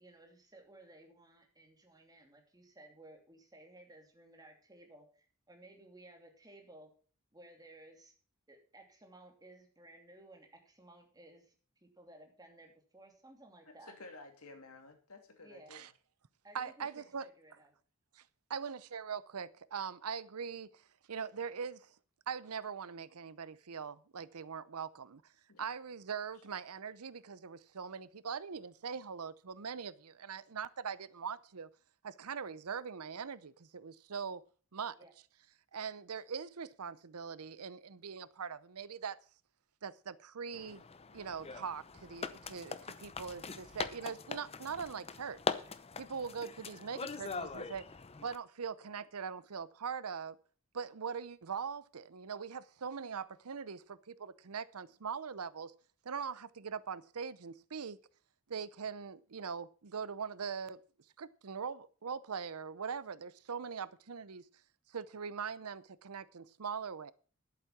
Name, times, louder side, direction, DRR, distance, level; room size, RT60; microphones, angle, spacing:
voice 1, 0.0-6.9 7.3-8.1 8.5-11.5 11.8-13.9 15.4-15.7 16.4-17.7 35.0-35.1, right 1 dB, 20° right, 2.8 m, -57 dB
voice 2, 13.7-15.9 25.5-25.7, left 3 dB, 80° left, 2.7 m, -53 dB
voice 3, 16.5-17.3 18.1-18.2 18.5-20.8 21.1-21.9 22.3-25.2 25.6-31.7 32.0-34.4 34.7-35.0 35.7-39.2 39.8-40.8 41.1-45.4 46.0-47.9 48.2-50.4 50.7-55.7 56.0-58.0 58.5-60.8 61.2-64.4 64.9-67.1, right 6 dB, 90° right, 0.7 m, -42 dB
sound 1, 40.5-48.4, left 4 dB, 30° left, 0.7 m, -42 dB
11.5 x 8.4 x 6.0 m
head